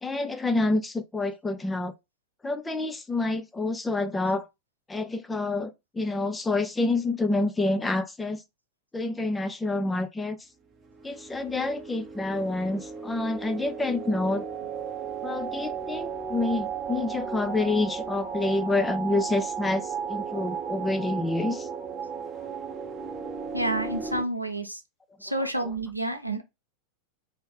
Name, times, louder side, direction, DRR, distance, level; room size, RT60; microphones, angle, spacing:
voice 1, 0.0-1.9 2.4-4.5 4.9-8.4 8.9-10.4 11.0-14.4 15.2-21.7, left 2 dB, 10° left, 0.5 m, -28 dB
sound 1, 10.8-24.2, right 6 dB, 25° right, 0.7 m, -35 dB
voice 2, 23.5-24.8 25.2-26.4, right 1 dB, 90° right, 0.7 m, -29 dB
4.3 x 2.8 x 3.7 m
figure-of-eight pair, 90°, 0 cm